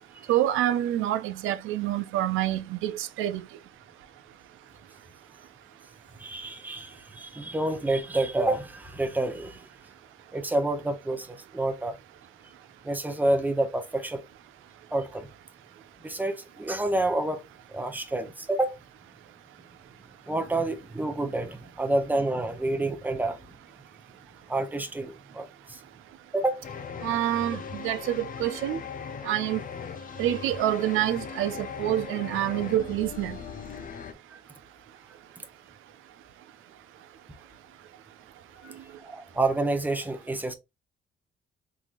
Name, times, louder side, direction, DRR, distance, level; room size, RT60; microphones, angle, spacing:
voice 1, 0.3-3.4 27.0-28.8 29.2-29.6 30.2-33.4, right 13 dB, 85° right, 0.4 m, -27 dB
voice 2, 6.2-9.6 10.3-12.0 12.8-14.2 14.9-15.3 16.0-17.4 17.7-18.8 20.3-23.4 24.5-25.8 26.3-26.6 38.6-38.7 39.0-40.5, right 2 dB, 10° right, 0.8 m, -28 dB
sound 1, 26.6-34.1, left 6 dB, 45° left, 0.5 m, -39 dB
3.7 x 3.0 x 2.5 m
cardioid pair, 90°, 20 cm